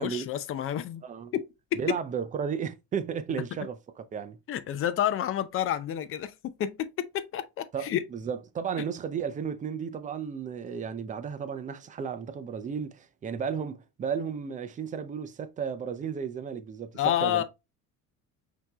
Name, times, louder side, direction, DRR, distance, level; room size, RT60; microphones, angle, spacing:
voice 1, 0.0-1.0 1.3-1.8 4.5-8.0 16.9-17.4, left 11 dB, 35° left, 0.5 m, -29 dB
voice 2, 1.0-1.3 1.7-4.4 7.7-17.4, right 7 dB, 20° right, 0.5 m, -34 dB
5.7 x 2.9 x 2.9 m
cardioid pair, 140°, 36 cm